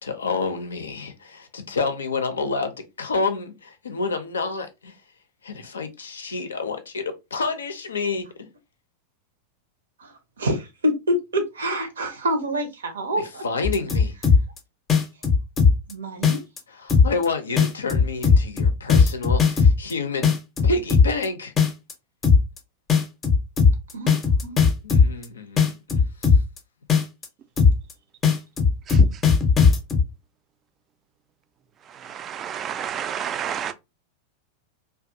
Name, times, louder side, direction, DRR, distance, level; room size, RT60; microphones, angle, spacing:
voice 1, 0.0-5.0 5.4-8.5 13.4-14.1 16.7-20.3 20.6-21.5 24.8-26.4, left 4 dB, 70° left, 0.4 m, -29 dB
voice 2, 10.0-13.4 15.9-16.4 23.9-24.1 24.4-24.6, equal, 70° right, 0.6 m, -26 dB
sound 1, 13.6-14.6 14.9-15.9 16.2-16.6 16.9-17.2 17.6-19.9 20.2-21.2 21.6-21.9 22.2-22.6 22.9-25.2 25.6-26.6 26.9-27.3 27.6-27.9 28.2-30.0, left 5 dB, 25° left, 0.6 m, -17 dB
voice 3, 32.0-33.7, right 8 dB, 30° right, 0.3 m, -30 dB
2.4 x 2.2 x 2.5 m
figure-of-eight pair, 90°, 0 cm